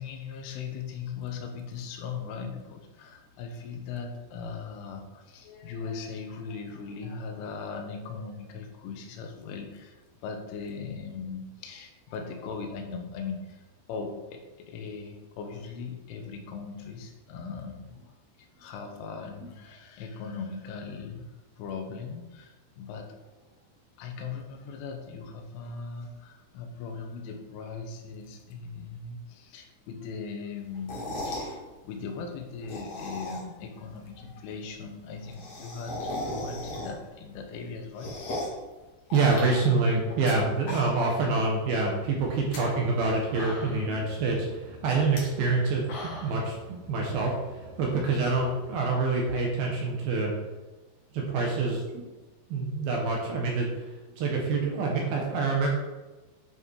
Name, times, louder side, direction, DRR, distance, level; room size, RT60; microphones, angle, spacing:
voice 1, 0.0-13.6 13.9-18.1 18.4-21.3 21.6-23.3 24.0-38.5, left 5 dB, 85° left, 4 dB, 3.6 m, -39 dB
sound 1, 30.7-31.5 32.5-33.6 34.0-34.1 34.3-34.4 34.6-34.7 34.9-37.2 37.5-38.6 39.1-40.3 40.6-41.2 41.5-41.6 42.3-42.6 43.1-43.2 43.3-44.0 45.0-45.2 45.6-46.4, left 1 dB, 45° left, 2.6 m, -37 dB
voice 2, 39.1-47.3 47.8-50.3 51.1-52.0 52.5-53.9 54.2-55.7, right 3 dB, 65° right, -1 dB, 2.6 m, -26 dB
sound 2, 42.2-48.8, right 1 dB, 85° right, 3.7 m, -48 dB
10.5 x 5.8 x 4.7 m, 1.2 s
omnidirectional pair, 5.5 m